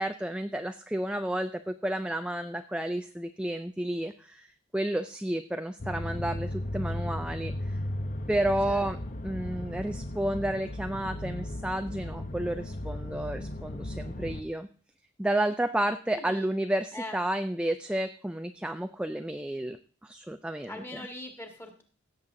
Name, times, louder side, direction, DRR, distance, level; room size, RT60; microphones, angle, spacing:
voice 1, 0.0-7.8 8.3-9.0 9.2-14.7 15.2-21.0, right 1 dB, 5° right, 8 dB, 0.4 m, -31 dB
sound 1, 5.8-14.4, left 1 dB, 40° left, 0.9 m, -36 dB
voice 2, 16.1-16.5 16.9-17.2 20.7-21.8, left 1 dB, 10° left, 4 dB, 1.9 m, -41 dB
17.0 x 7.5 x 3.8 m, 0.41 s
head